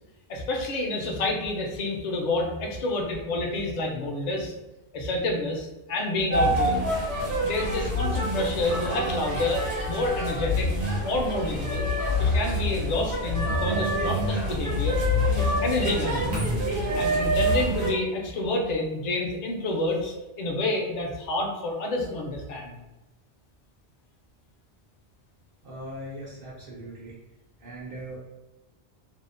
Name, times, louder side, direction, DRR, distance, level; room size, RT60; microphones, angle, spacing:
voice 1, 0.3-4.5 4.9-6.8 7.4-10.7 11.0-11.9 12.2-15.0 15.4-16.5 16.9-22.8, left 2 dB, 55° left, 1 dB, 0.5 m, -29 dB
sound 1, 6.3-17.9, equal, 85° right, 1.2 m, -26 dB
voice 2, 25.6-27.2 27.6-28.2, right 1 dB, 60° right, -5 dB, 0.7 m, -39 dB
2.7 x 2.0 x 2.4 m, 1.0 s
omnidirectional pair, 1.1 m